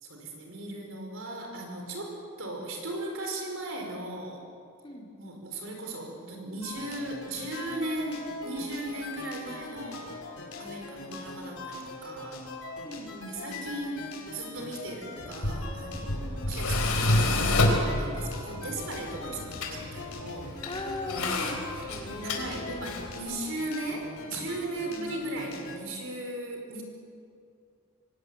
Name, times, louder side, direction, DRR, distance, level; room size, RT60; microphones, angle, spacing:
voice 1, 0.0-4.4 5.2-10.1 10.6-12.4 13.3-20.7 21.1-21.5 22.2-26.8, right 2 dB, 60° right, 2 dB, 5.2 m, -37 dB
voice 2, 4.8-5.3 12.8-13.6 19.2-19.4 20.7-22.6 24.8-25.1, left 1 dB, 20° left, 0 dB, 2.8 m, -39 dB
sound 1, 6.6-25.8, left 3 dB, 70° left, 5.1 m, -42 dB
Tools, 15.2-23.2, left 2 dB, 85° left, 4.0 m, -29 dB
24.5 x 18.5 x 9.6 m, 2.4 s
head